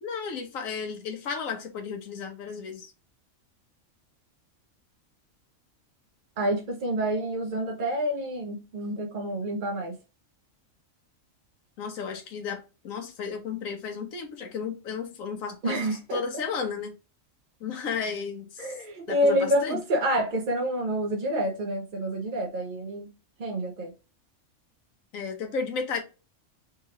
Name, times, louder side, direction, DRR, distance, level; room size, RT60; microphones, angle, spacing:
voice 1, 0.0-2.9 11.8-15.8 16.1-16.9 17.6-18.8 19.1-19.8 25.1-26.0, left 5 dB, 85° left, 1.2 m, -33 dB
voice 2, 6.4-10.0 15.6-16.2 18.6-23.1 23.4-23.9, equal, 50° right, 0.7 m, -28 dB
3.6 x 3.0 x 2.8 m
omnidirectional pair, 1.4 m